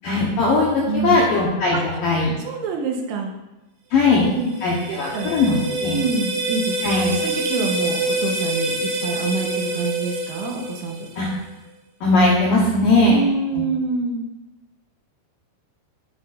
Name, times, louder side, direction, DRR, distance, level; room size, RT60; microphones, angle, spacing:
voice 1, 0.0-2.3 3.9-4.3 4.6-6.0 6.8-7.2 11.2-11.3 12.0-13.2, left 2 dB, 75° left, -5 dB, 2.1 m, -19 dB
voice 2, 0.9-1.2 1.7-2.0 2.4-3.3 4.3-4.5 4.8-5.3 5.9-6.8 7.2-11.1 13.0-14.3, right 4 dB, 85° right, 1 dB, 3.5 m, -26 dB
sound 1, 4.3-11.3, right 2 dB, 65° right, 2.9 m, -26 dB
9.5 x 9.3 x 2.6 m, 1.0 s
omnidirectional pair, 5.6 m